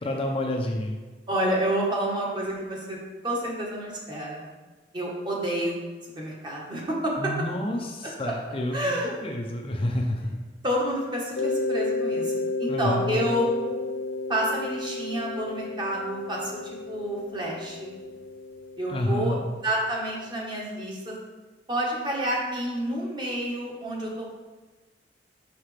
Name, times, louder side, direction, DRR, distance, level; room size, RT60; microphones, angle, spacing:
voice 1, 0.0-1.0 7.2-8.9 9.2-10.4 12.7-13.2 18.9-19.4, left 1 dB, 30° left, 1 dB, 0.5 m, -29 dB
voice 2, 1.3-3.0 3.2-4.5 4.9-5.8 6.2-7.1 8.3-8.4 8.7-9.1 10.6-13.8 14.3-17.9 18.8-19.4 19.6-21.1 21.7-24.3, right 1 dB, 25° right, -3 dB, 1.2 m, -29 dB
Mallet percussion, 11.4-20.0, left 2 dB, 80° left, 0.8 m, -32 dB
5.8 x 5.7 x 3.3 m, 1.3 s
head